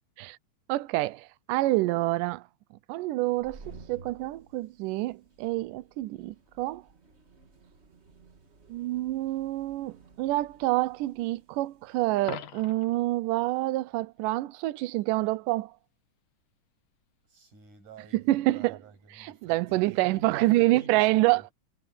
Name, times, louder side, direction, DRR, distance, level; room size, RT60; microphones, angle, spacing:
voice 1, 0.7-2.4 2.9-3.6 3.9-6.8 8.7-15.7 18.1-18.8 19.2-21.4, right 18 dB, 80° right, 2.3 m, -27 dB
sound 1, 3.2-13.7, right 3 dB, 30° right, 1.3 m, -55 dB
Coin (dropping), 12.2-13.0 19.1-19.3, left 12 dB, 70° left, 2.6 m, -42 dB
voice 2, 17.3-21.4, right 5 dB, 65° right, 8.5 m, -50 dB
omnidirectional pair, 3.8 m